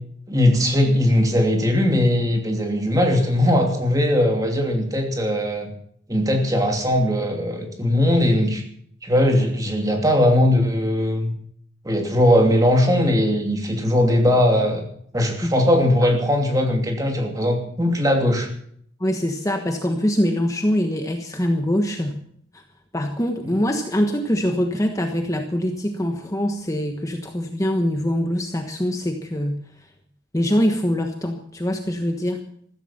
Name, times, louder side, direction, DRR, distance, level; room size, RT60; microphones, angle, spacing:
voice 1, 0.3-5.7 6.1-8.6 9.0-11.3 11.8-14.8 15.1-18.5, left 1 dB, 20° right, 3 dB, 2.8 m, -19 dB
voice 2, 19.0-22.2 22.9-29.6 30.3-32.4, equal, 15° left, 4 dB, 1.2 m, -23 dB
14.5 x 14.5 x 5.8 m, 0.64 s
head